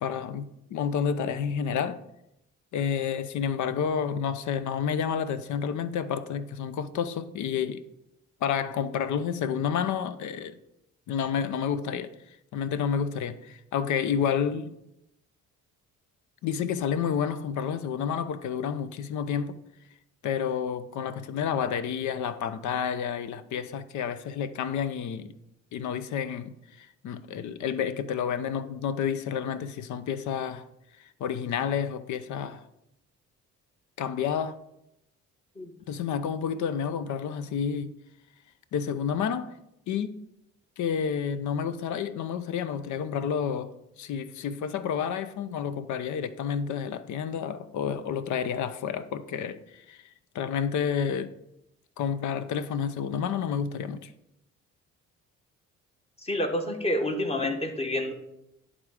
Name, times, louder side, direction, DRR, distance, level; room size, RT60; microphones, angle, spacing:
voice 1, 0.0-2.0 2.7-7.8 8.4-10.6 11.1-12.1 12.5-14.7 16.4-19.6 20.2-25.3 25.7-30.6 31.2-32.6 34.0-34.6 35.9-37.9 38.7-39.5 39.9-40.2 40.8-50.0 50.3-51.3 52.0-54.1, left 7 dB, 75° left, 0.6 m, -30 dB
voice 2, 56.2-58.1, left 1 dB, 20° left, 1.2 m, -28 dB
10.5 x 3.7 x 4.8 m
cardioid pair, 90°, 30 cm